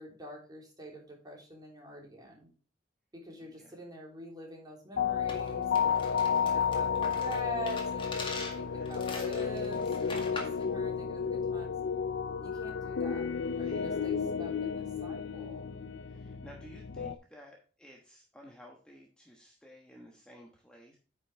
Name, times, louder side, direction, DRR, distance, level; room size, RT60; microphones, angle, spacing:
voice 1, 0.0-2.5 3.1-5.9 6.4-11.7 12.4-13.3 13.6-15.7, equal, 20° right, -1 dB, 3.3 m, -45 dB
voice 2, 3.4-3.8 8.5-9.0 13.6-14.0 16.0-21.0, equal, 5° left, -1 dB, 1.2 m, -54 dB
sound 1, 5.0-17.1, left 6 dB, 75° left, 0.6 m, -32 dB
sound 2, 5.3-10.6, left 3 dB, 30° left, 2.0 m, -43 dB
9.3 x 6.0 x 3.4 m, 0.39 s
head